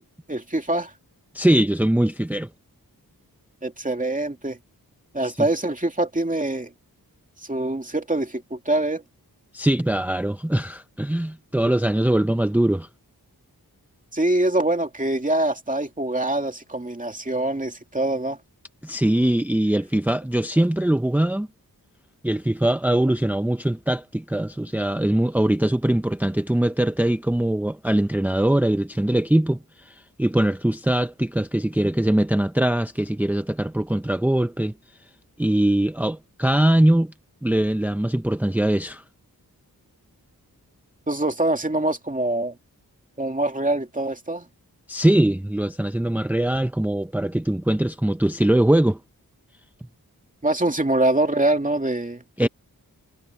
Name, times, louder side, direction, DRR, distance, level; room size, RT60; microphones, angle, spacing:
voice 1, 0.3-0.9 3.6-4.6 5.1-6.7 7.4-9.0 14.1-18.4 41.1-42.6 43.2-44.5 50.4-52.5, right 2 dB, 20° right, 2.5 m, -24 dB
voice 2, 1.3-2.5 9.5-12.9 18.8-21.5 22.2-34.7 35.4-37.1 37.4-39.0 44.9-49.0 52.4-52.5, right 1 dB, 5° right, 0.7 m, -22 dB
wide cardioid pair, 95°, 37 cm